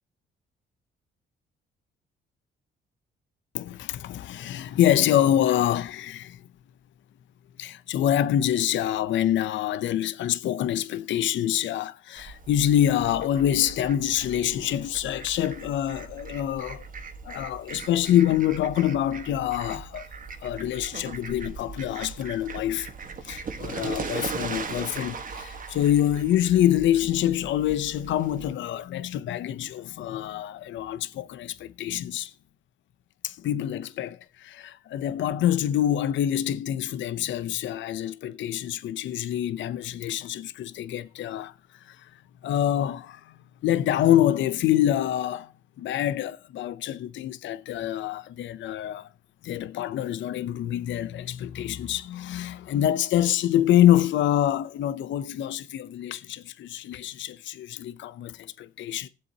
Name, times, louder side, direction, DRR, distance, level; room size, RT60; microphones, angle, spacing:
voice 1, 3.5-6.4 7.6-16.8 17.2-20.1 20.4-22.9 23.2-32.3 33.2-42.1 42.4-45.5 45.8-49.1 49.4-59.1, left 11 dB, 70° left, 0.6 m, -26 dB
Fowl, 12.2-28.5, right 5 dB, 45° right, 1.5 m, -39 dB
19.5 x 7.7 x 2.8 m
cardioid pair, 90°, 20 cm